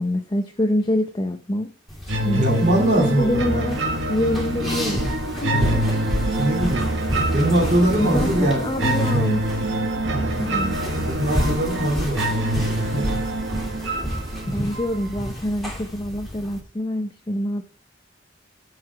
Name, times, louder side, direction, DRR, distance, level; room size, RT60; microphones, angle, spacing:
voice 1, 0.0-1.7 2.2-3.8 4.1-6.1 8.0-9.6 10.4-10.8 14.5-17.6, left 1 dB, 25° left, 0.6 m, -26 dB
sound 1, 1.9-16.6, equal, ahead, 2.5 m, -31 dB
sound 2, 2.1-15.1, right 1 dB, 90° right, 1.6 m, -25 dB
voice 2, 2.3-3.7 5.5-5.8 6.4-6.8 7.3-9.2 10.0-10.5 11.0-13.0 14.1-14.7, right 1 dB, 40° right, 2.8 m, -23 dB
9.7 x 4.9 x 5.7 m
head